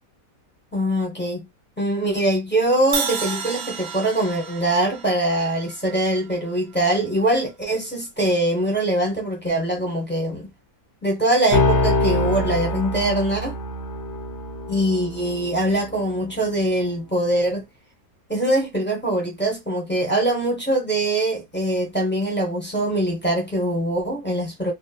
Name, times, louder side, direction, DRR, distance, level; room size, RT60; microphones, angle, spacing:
voice 1, 0.7-1.5 1.8-10.5 11.0-13.5 14.7-17.6 18.3-24.7, right 1 dB, 10° left, 0.5 m, -23 dB
Crash cymbal, 2.9-7.0, right 6 dB, 70° right, 0.8 m, -32 dB
sound 1, 11.5-16.4, left 2 dB, 85° left, 1.5 m, -25 dB
3.2 x 2.0 x 2.3 m
omnidirectional pair, 1.9 m